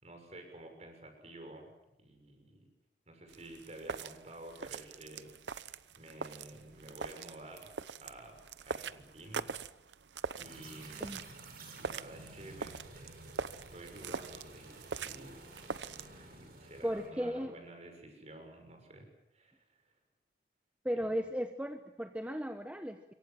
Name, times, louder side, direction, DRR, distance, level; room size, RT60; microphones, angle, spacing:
voice 1, 0.0-1.7 2.0-2.7 3.1-7.7 8.0-8.4 8.7-9.5 10.4-11.2 11.7-13.1 13.5-15.4 16.1-19.1 19.3-19.9, right 1 dB, 40° right, 5 dB, 6.6 m, -51 dB
sound 1, 3.3-16.1, right 5 dB, 90° right, 0.8 m, -43 dB
sound 2, 10.4-17.1, right 2 dB, 55° right, 5.9 m, -52 dB
voice 2, 16.8-17.5 20.8-23.1, equal, 10° right, 6 dB, 1.0 m, -36 dB
27.0 x 23.5 x 7.6 m, 0.87 s
head